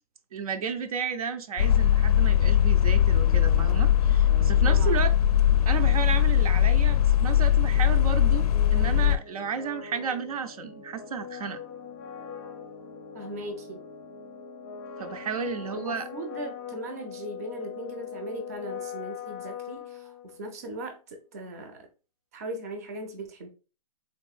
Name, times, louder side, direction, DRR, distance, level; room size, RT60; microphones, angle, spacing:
voice 1, 0.3-5.1 5.7-11.6 15.0-16.1, right 6 dB, 75° right, 0.5 m, -32 dB
sound 1, 1.6-9.2, left 10 dB, 90° left, 0.4 m, -21 dB
sound 2, 3.0-20.6, left 6 dB, 30° left, 0.5 m, -42 dB
voice 2, 4.6-5.1 13.1-13.8 15.4-21.9 22.3-23.5, right 2 dB, 25° right, 0.4 m, -39 dB
3.6 x 2.5 x 2.3 m
hypercardioid pair, 175°, 19 cm